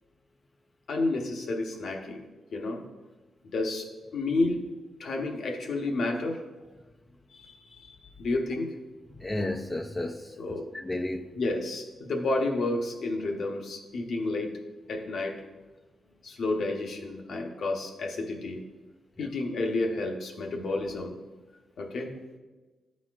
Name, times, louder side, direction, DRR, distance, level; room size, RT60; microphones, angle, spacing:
voice 1, 0.9-2.2 2.5-2.8 3.4-4.6 5.0-6.4 7.3-8.7 10.4-10.7 11.3-14.6 14.9-15.4 16.2-18.6 19.2-21.2 21.8-22.1, left 2 dB, 70° left, 2 dB, 0.9 m, -31 dB
voice 2, 9.1-10.3 10.7-11.3 19.2-19.3, left 1 dB, 20° left, 3 dB, 0.4 m, -32 dB
11.5 x 4.2 x 2.4 m, 1.2 s
cardioid pair, 85°, 0 cm